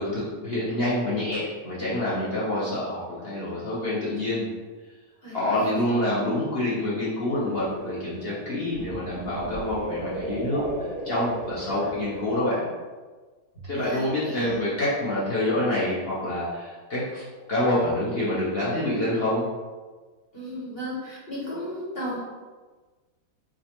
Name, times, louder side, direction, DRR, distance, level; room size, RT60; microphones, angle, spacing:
voice 1, 0.0-4.5 5.3-12.6 13.6-17.2 17.5-19.5, left 1 dB, 65° left, -8 dB, 0.5 m, -27 dB
voice 2, 5.2-5.9 13.7-14.6 20.3-22.2, equal, 40° left, -8 dB, 0.9 m, -35 dB
sound 1, 7.3-12.4, right 1 dB, 45° right, 1.3 m, -36 dB
4.9 x 2.2 x 2.9 m, 1.3 s
omnidirectional pair, 2.2 m